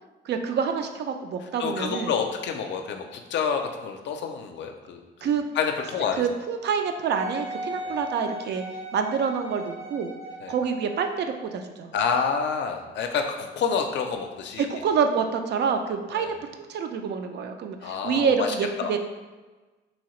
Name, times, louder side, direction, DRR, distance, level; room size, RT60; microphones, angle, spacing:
voice 1, 0.2-2.1 5.2-5.4 6.2-8.6 8.9-10.1 10.5-11.9 14.6-16.3 16.7-19.0, right 6 dB, 60° right, 6 dB, 0.4 m, -27 dB
voice 2, 1.6-6.2 7.8-7.9 10.4-10.5 11.9-14.7 16.1-16.3 17.8-18.9, left 6 dB, 65° left, 5 dB, 0.4 m, -28 dB
Wind instrument woodwind instrument, 7.1-11.5 12.1-12.2, equal, 80° right, 1.4 m, -38 dB
2.9 x 2.7 x 3.0 m, 1.2 s
cardioid pair, 90°, 20 cm